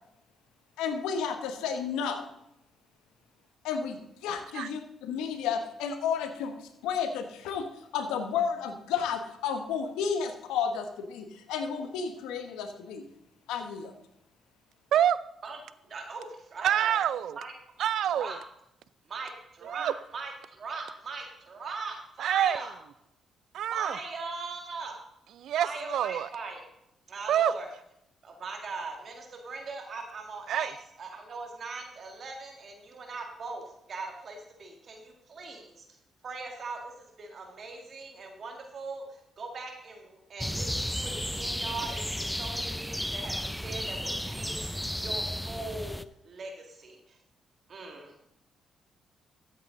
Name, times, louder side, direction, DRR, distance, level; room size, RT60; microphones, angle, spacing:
voice 1, 0.8-2.3 3.6-13.0 13.5-13.9, left 6 dB, 85° left, 7 dB, 1.2 m, -32 dB
voice 2, 15.8-16.9 17.4-17.5 18.1-18.4 19.1-19.3 19.6-22.7 23.7-25.0 25.6-26.6 27.1-27.7 28.2-30.7 31.0-35.8 36.2-47.2 47.7-48.1, right 3 dB, 55° right, 3 dB, 2.0 m, -40 dB
voice 3, 16.6-17.4 17.8-18.3 19.7-19.9 22.2-22.6 23.5-24.0 25.4-26.3 27.3-27.5 30.5-30.7, right 10 dB, 75° right, 17 dB, 0.4 m, -26 dB
sound 1, 40.4-46.0, equal, 5° left, 0.5 m, -33 dB
13.0 x 8.2 x 3.8 m, 0.81 s
supercardioid pair, 55°, 0 cm